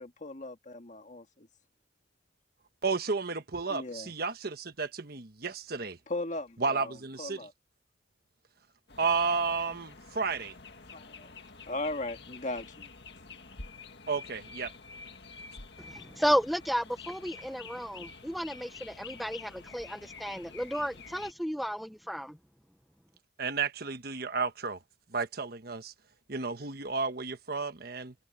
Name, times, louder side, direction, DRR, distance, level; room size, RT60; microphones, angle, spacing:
voice 1, 0.0-1.5 3.7-4.1 6.1-7.5 10.9-11.4 11.7-12.9, left 2 dB, 40° left, 1.9 m, -38 dB
voice 2, 2.8-6.0 6.6-7.4 9.0-10.5 14.1-14.7 23.4-24.8 25.1-25.9 26.3-28.1, right 4 dB, 55° right, 1.3 m, -32 dB
sound 1, 8.9-21.3, left 4 dB, 65° left, 2.0 m, -48 dB
voice 3, 15.8-22.4, equal, ahead, 0.9 m, -33 dB
head